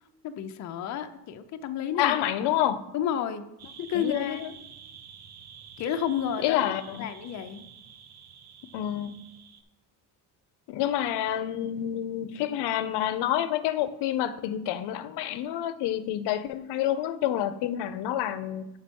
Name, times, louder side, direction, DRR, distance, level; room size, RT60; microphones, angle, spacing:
voice 1, 0.2-2.2 2.5-2.6 2.9-3.4 3.8-4.4 5.8-7.6, left 9 dB, 45° left, 7 dB, 0.5 m, -31 dB
voice 2, 2.0-2.8 3.9-4.5 6.4-7.1 8.7-9.2 10.7-18.7, left 11 dB, 85° left, 12 dB, 0.6 m, -28 dB
sound 1, 3.6-9.6, right 7 dB, 40° right, 0.7 m, -49 dB
7.5 x 5.3 x 5.2 m, 0.92 s
cardioid pair, 180°, 40 cm